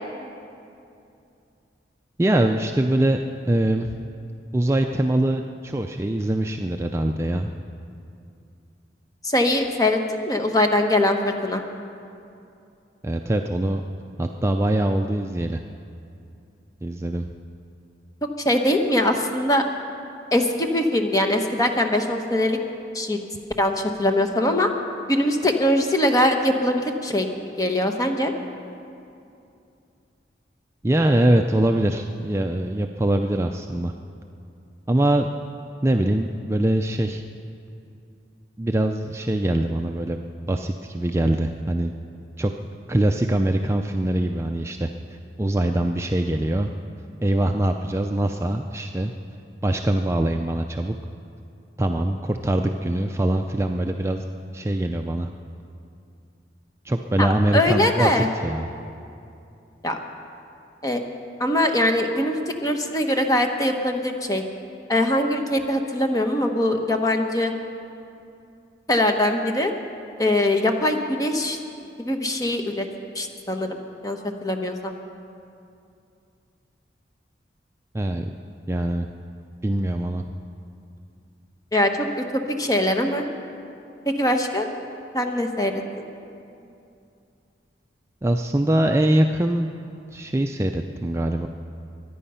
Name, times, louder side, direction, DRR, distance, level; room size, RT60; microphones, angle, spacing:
voice 1, 2.2-3.2 3.4-3.9 4.5-7.5 13.0-13.8 14.2-15.6 16.8-17.3 30.8-33.9 34.9-35.3 35.8-37.2 38.6-40.2 40.5-41.9 42.4-42.5 42.9-46.7 47.2-49.1 49.6-51.0 51.8-54.2 54.5-55.3 56.8-58.7 77.9-78.3 78.7-79.1 79.6-80.2 88.2-89.7 90.1-91.5, right 1 dB, 15° right, 4 dB, 0.4 m, -23 dB
voice 2, 9.2-10.0 10.2-11.6 18.4-19.6 20.3-22.6 22.9-23.2 23.6-24.7 25.1-27.3 27.6-28.3 57.2-58.3 59.8-60.0 60.8-61.0 61.4-62.4 62.6-64.4 64.9-67.5 68.9-69.7 70.2-71.6 72.0-72.8 73.1-73.8 74.0-74.9 81.7-83.3 84.0-84.7 85.1-86.0, left 1 dB, 20° left, 4 dB, 1.1 m, -22 dB
23.0 x 10.0 x 5.6 m, 2.6 s
head